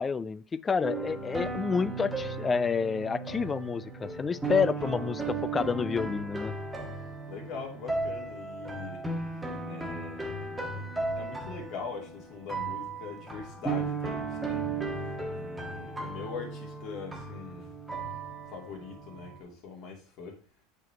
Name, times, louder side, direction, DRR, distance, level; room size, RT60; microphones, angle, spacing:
voice 1, 0.0-6.5, left 5 dB, 20° left, 0.3 m, -29 dB
sound 1, 0.8-19.4, right 3 dB, 5° right, 1.2 m, -36 dB
voice 2, 4.5-5.0 7.3-9.0 9.7-10.5 11.2-17.7 18.5-20.4, left 5 dB, 50° left, 2.5 m, -42 dB
8.0 x 4.0 x 4.4 m
supercardioid pair, 135°, 0 cm